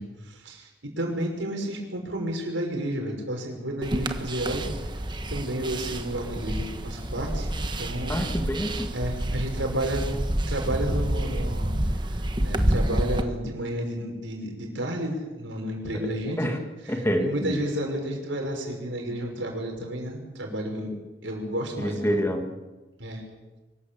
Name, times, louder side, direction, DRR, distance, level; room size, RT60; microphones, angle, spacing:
voice 1, 0.0-4.7 5.3-8.3 8.9-10.1 10.5-11.7 12.1-16.6 16.8-20.9 21.2-22.0 23.0-23.2, right 1 dB, 85° right, 2 dB, 5.9 m, -31 dB
sound 1, 3.8-13.2, right 1 dB, 25° right, 1.3 m, -28 dB
voice 2, 8.1-8.9 15.9-16.1 16.4-16.6 16.9-17.6 21.8-22.6, equal, 15° left, 5 dB, 1.9 m, -27 dB
24.0 x 14.5 x 8.7 m, 1.2 s
head